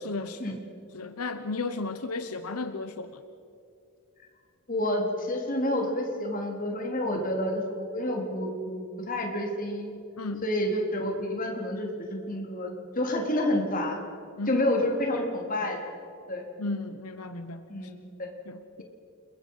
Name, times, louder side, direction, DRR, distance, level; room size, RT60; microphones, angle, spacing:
voice 1, 0.0-0.6 0.9-3.2 10.2-10.4 14.4-14.6 16.6-17.6 18.5-18.8, left 3 dB, 85° left, 9 dB, 1.1 m, -34 dB
voice 2, 4.7-9.9 10.4-14.0 14.5-15.8 16.3-16.4 17.7-18.3, left 1 dB, 40° left, 1 dB, 3.7 m, -29 dB
30.0 x 22.0 x 5.7 m, 2.6 s
head